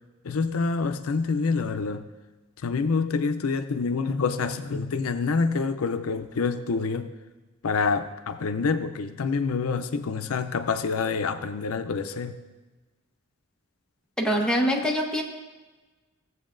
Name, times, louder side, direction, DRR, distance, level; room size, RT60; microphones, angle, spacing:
voice 1, 0.2-2.0 2.6-7.1 7.6-12.4, left 4 dB, 85° left, 10 dB, 0.5 m, -27 dB
voice 2, 14.2-15.2, equal, 5° left, -1 dB, 1.1 m, -24 dB
16.0 x 7.9 x 2.6 m, 1.2 s
head